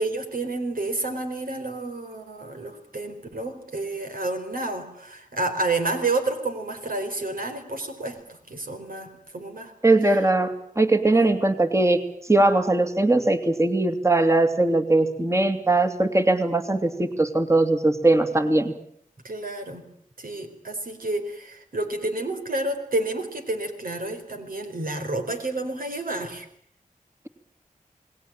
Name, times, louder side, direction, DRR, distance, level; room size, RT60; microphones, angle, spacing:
voice 1, 0.0-9.7 10.0-10.2 11.1-11.4 19.2-19.9 20.2-26.5, right 2 dB, 85° right, 6 dB, 4.4 m, -30 dB
voice 2, 9.8-12.0 12.3-18.7, right 2 dB, 20° right, 8 dB, 2.5 m, -20 dB
28.5 x 19.5 x 8.9 m, 0.68 s
wide cardioid pair, 75°, 14 cm